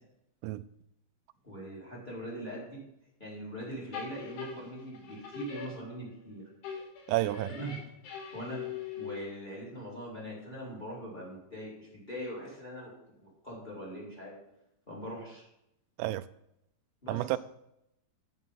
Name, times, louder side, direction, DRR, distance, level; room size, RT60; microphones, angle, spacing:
voice 1, 1.4-2.8 3.2-6.4 7.5-7.8 8.3-8.6 8.9-12.9 13.4-14.3 14.9-15.4 17.0-17.2, equal, 10° left, 4.4 m, -41 dB
sound 1, 3.9-6.3 6.6-9.5, left 6 dB, 85° left, 4.5 m, -42 dB
voice 2, 7.1-7.5 16.0-16.2 17.1-17.4, right 17 dB, 85° right, 2.6 m, -30 dB
9.9 x 9.2 x 5.7 m
omnidirectional pair, 5.2 m